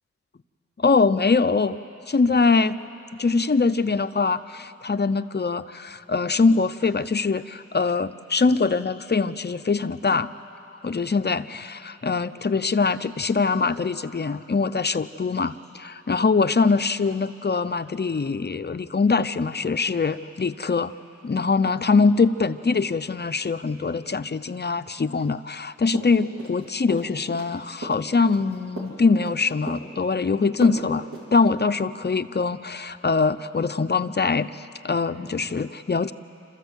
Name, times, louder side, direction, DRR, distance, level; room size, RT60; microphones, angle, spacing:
voice 1, 0.8-1.8 2.1-2.8 3.2-10.3 10.8-20.9 21.2-36.1, left 4 dB, 35° left, 11 dB, 0.6 m, -23 dB
sound 1, 25.9-26.6 26.9-27.5 27.8-29.4 29.7-30.2 30.6-30.8 31.1-31.3, right 2 dB, 85° right, 4.1 m, -36 dB
27.5 x 14.0 x 8.1 m, 2.9 s
wide cardioid pair, 55°, 29 cm